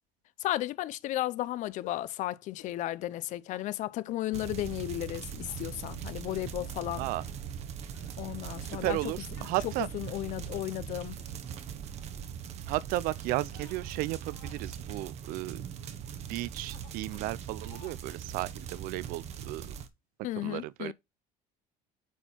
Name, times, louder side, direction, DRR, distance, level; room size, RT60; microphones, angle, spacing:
voice 1, 0.4-7.1 8.2-9.0 9.4-11.2 20.2-20.9, left 15 dB, 55° left, 0.6 m, -34 dB
sound 1, 1.8-2.1 2.6-2.8 3.1-3.7 4.3-4.5 5.1-5.6 6.2-6.5 7.1-7.6 7.9-8.2 9.3-10.4 10.9-11.4 12.1-12.3 12.7-12.9 13.4-14.7 14.9-15.2 16.1-16.4 16.6-17.4 17.7-18.0, left 12 dB, 90° left, 3.0 m, -57 dB
sound 2, 4.3-19.9, right 8 dB, 45° right, 0.9 m, -41 dB
voice 2, 8.7-9.9 12.7-15.6 16.3-19.8 20.4-20.9, right 17 dB, 70° right, 0.5 m, -34 dB
9.4 x 4.4 x 4.4 m
cardioid pair, 155°, 15 cm